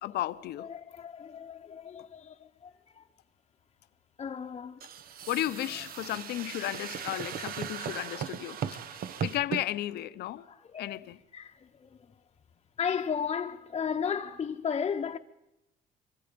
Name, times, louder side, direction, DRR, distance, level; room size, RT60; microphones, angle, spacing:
voice 1, 0.0-0.7 5.3-10.4 10.8-11.2, left 14 dB, 75° left, 0.9 m, -34 dB
voice 2, 0.6-3.0 4.2-4.8 9.0-9.2 10.4-11.0 11.3-12.1 12.8-15.2, left 7 dB, 35° left, 1.0 m, -35 dB
sound 1, 4.8-9.6, right 8 dB, 60° right, 1.2 m, -37 dB
24.5 x 24.5 x 5.3 m
cardioid pair, 110°, 17 cm